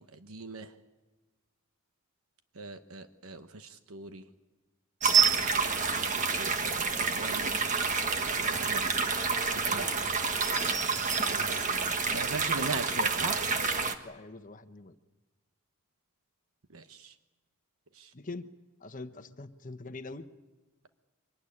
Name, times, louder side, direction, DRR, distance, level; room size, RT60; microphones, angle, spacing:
voice 1, 0.3-0.7 2.6-4.2 5.4-6.0 6.4-7.5 8.4-8.9 9.4-9.9 11.3-13.5 16.7-17.1, right 3 dB, 75° right, 9 dB, 1.1 m, -40 dB
sound 1, 5.0-13.9, right 5 dB, 35° right, 1.5 m, -28 dB
voice 2, 14.0-14.9 18.1-18.4 18.8-20.3, left 3 dB, 35° left, 10 dB, 1.0 m, -43 dB
24.5 x 19.0 x 9.9 m, 1.2 s
head